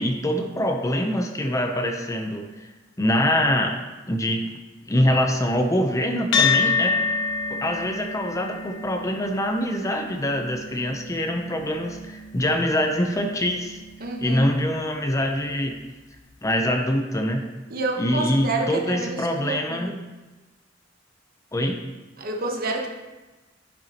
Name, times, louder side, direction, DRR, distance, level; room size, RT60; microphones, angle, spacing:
voice 1, 0.0-2.5 3.0-3.8 4.1-4.5 4.9-7.0 7.5-13.8 14.2-15.7 16.4-17.4 18.0-20.0 21.5-21.8, equal, 15° left, 4 dB, 0.6 m, -24 dB
sound 1, 6.3-15.0, left 5 dB, 85° left, 1.1 m, -29 dB
voice 2, 14.0-14.5 17.7-20.0 22.2-22.9, right 2 dB, 55° right, 1 dB, 1.0 m, -28 dB
10.5 x 6.0 x 2.9 m, 1.2 s
head